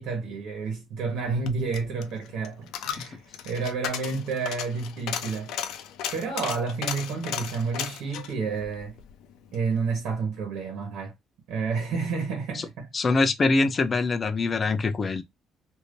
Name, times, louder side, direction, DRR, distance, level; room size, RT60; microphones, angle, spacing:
voice 1, 0.0-5.5 6.1-9.0 9.5-11.1 11.5-12.9, right 4 dB, 65° right, 1.2 m, -30 dB
Coin (dropping), 1.2-9.7 10.0-10.1, left 9 dB, 70° left, 0.6 m, -36 dB
voice 2, 12.9-15.2, left 3 dB, 25° left, 0.4 m, -23 dB
3.4 x 2.7 x 2.5 m
cardioid pair, 160°, 0 cm